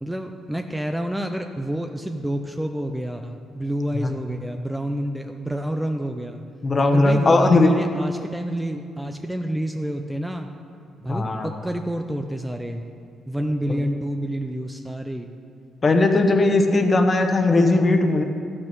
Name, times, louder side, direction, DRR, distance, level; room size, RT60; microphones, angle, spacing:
voice 1, 0.0-6.4 6.9-10.5 11.0-12.8 13.3-15.3, right 1 dB, 5° right, 5 dB, 0.5 m, -28 dB
voice 2, 6.6-7.7 11.1-11.5 13.7-13.8 15.8-18.2, left 2 dB, 35° left, 5 dB, 1.1 m, -18 dB
13.0 x 6.1 x 6.1 m, 2.3 s
cardioid pair, 90°, 0 cm